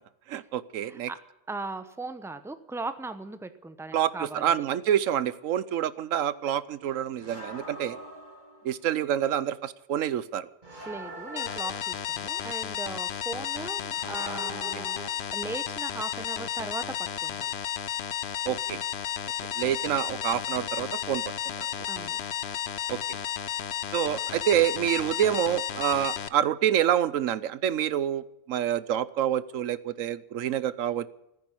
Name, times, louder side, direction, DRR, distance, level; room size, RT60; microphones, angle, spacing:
voice 1, 0.3-1.1 3.9-8.0 8.6-10.5 18.5-18.8 19.6-21.2 22.9-23.2 23.9-28.2 28.5-31.1, right 10 dB, 90° right, 17 dB, 1.1 m, -27 dB
voice 2, 0.8-1.2 1.5-4.5 10.8-15.0 15.3-16.9 17.2-17.5 21.9-22.2, right 3 dB, ahead, 10 dB, 0.9 m, -38 dB
sound 1, 7.2-8.9 10.6-12.3 13.9-15.2, right 2 dB, 35° right, 3.3 m, -42 dB
sound 2, 11.4-26.3, left 10 dB, 60° left, 0.9 m, -33 dB
14.5 x 10.0 x 8.9 m, 0.87 s
omnidirectional pair, 1.3 m